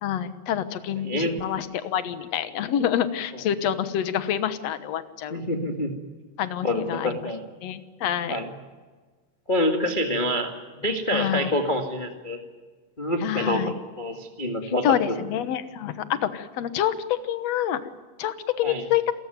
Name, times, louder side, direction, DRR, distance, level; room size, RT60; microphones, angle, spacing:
voice 1, 0.0-5.4 6.4-7.3 7.6-8.4 11.1-11.5 13.2-13.7 14.6-17.8 18.2-19.0, left 10 dB, 65° left, 12 dB, 1.7 m, -27 dB
voice 2, 5.3-5.9 6.6-7.4 8.3-8.5 9.5-12.4 13.0-13.6 14.0-15.1 18.6-18.8, left 1 dB, 25° left, 3 dB, 1.0 m, -26 dB
28.0 x 15.0 x 9.3 m, 1.4 s
omnidirectional pair, 4.4 m